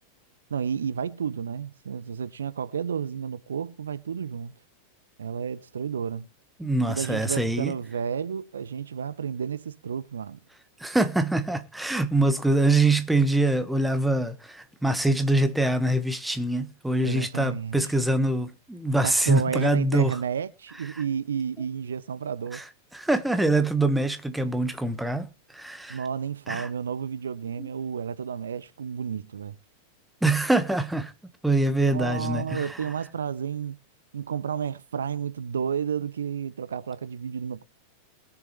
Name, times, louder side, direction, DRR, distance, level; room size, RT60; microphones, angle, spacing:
voice 1, 0.5-4.5 5.2-6.3 6.9-10.4 17.0-17.8 19.0-22.6 25.9-29.6 31.8-33.8 34.1-37.6, right 7 dB, 70° right, 0.6 m, -31 dB
voice 2, 6.6-7.7 10.8-20.1 22.5-22.6 22.9-26.0 26.5-26.7 27.6-27.7 30.2-31.1 31.4-32.8, right 2 dB, 5° right, 1.2 m, -24 dB
21.0 x 7.1 x 3.1 m
figure-of-eight pair, 90°, 0 cm